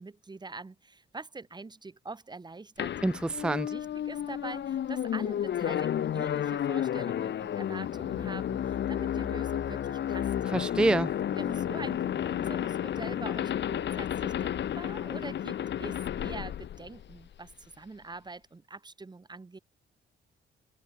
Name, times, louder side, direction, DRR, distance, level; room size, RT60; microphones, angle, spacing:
voice 1, 0.0-2.9 3.7-10.3 11.3-19.6, right 3 dB, 20° right, 2.6 m, -44 dB
sound 1, 2.8-17.5, left 10 dB, 60° left, 2.1 m, -32 dB
voice 2, 3.0-3.7 10.5-11.1, right 1 dB, 5° right, 0.4 m, -26 dB
cardioid pair, 90°, 20 cm